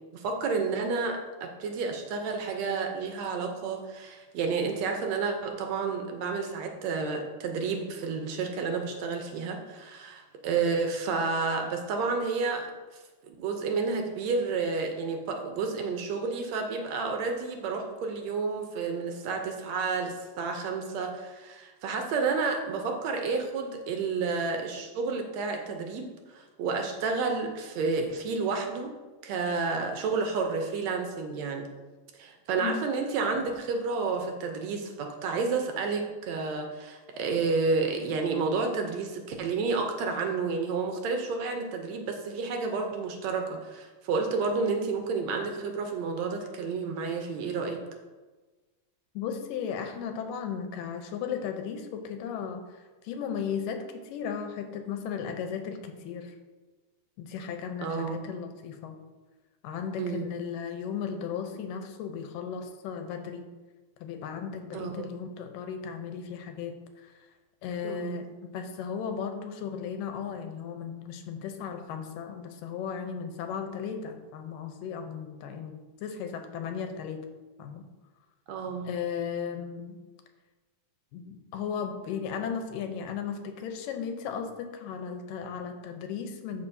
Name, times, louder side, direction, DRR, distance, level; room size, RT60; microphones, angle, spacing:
voice 1, 0.1-12.7 13.3-29.0 29.2-31.7 32.2-47.8 57.8-58.2 60.0-60.3 64.7-65.1 67.8-68.2 78.5-78.9, right 4 dB, 75° right, 4 dB, 1.7 m, -30 dB
voice 2, 49.2-56.4 57.2-59.0 59.6-63.5 64.0-67.1 67.6-77.2 77.6-77.8 78.9-80.0 81.1-86.7, left 7 dB, 85° left, 6 dB, 2.4 m, -36 dB
14.0 x 5.1 x 2.7 m, 1.3 s
omnidirectional pair, 3.8 m